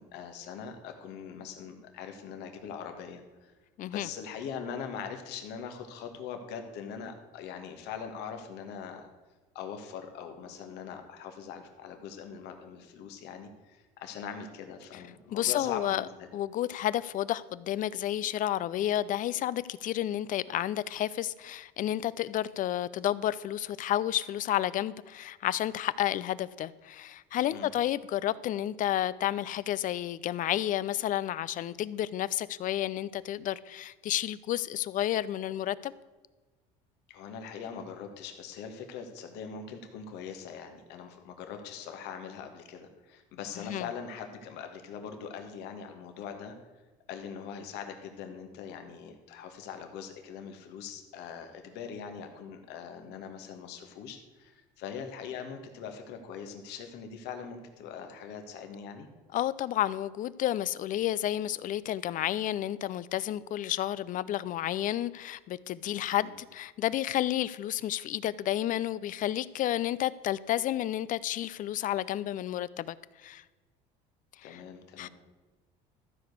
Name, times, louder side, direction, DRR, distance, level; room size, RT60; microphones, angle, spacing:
voice 1, 0.0-3.5 3.8-9.1 9.5-16.3 27.5-27.7 37.1-46.5 47.1-59.1 66.2-66.3 74.4-75.1, left 7 dB, 70° left, 1.6 m, -42 dB
voice 2, 3.8-4.1 14.9-15.0 15.3-16.0 16.3-35.9 43.6-43.9 59.3-73.0 73.2-73.4 74.4-74.6 75.0-75.1, left 12 dB, 50° left, 0.5 m, -31 dB
13.5 x 5.0 x 8.0 m
supercardioid pair, 100°, 18 cm